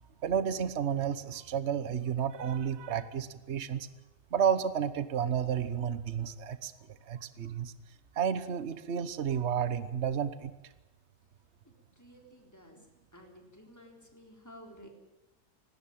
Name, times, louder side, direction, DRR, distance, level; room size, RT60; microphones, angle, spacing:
voice 1, 0.2-3.9 4.3-7.7 8.1-10.5, right 8 dB, 45° right, 14 dB, 1.2 m, -31 dB
voice 2, 11.6-14.9, equal, 10° left, 2 dB, 3.8 m, -54 dB
18.5 x 17.5 x 9.1 m, 1.0 s
omnidirectional pair, 1.8 m